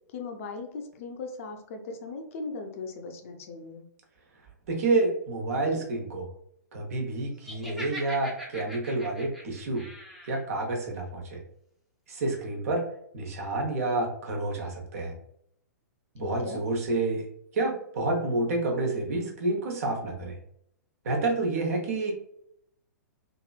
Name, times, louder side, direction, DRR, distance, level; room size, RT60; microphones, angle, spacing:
voice 1, 0.1-3.8 16.2-16.6, left 4 dB, 50° left, 5 dB, 0.5 m, -38 dB
voice 2, 4.7-6.3 6.7-9.8 10.3-11.4 12.1-12.9 13.1-15.1 16.1-17.2 17.5-20.4 21.0-22.1, right 2 dB, 55° right, 1 dB, 0.8 m, -29 dB
Laughter, 7.4-10.4, right 1 dB, ahead, 0.6 m, -41 dB
2.9 x 2.6 x 2.3 m, 0.70 s
figure-of-eight pair, 110°, 10 cm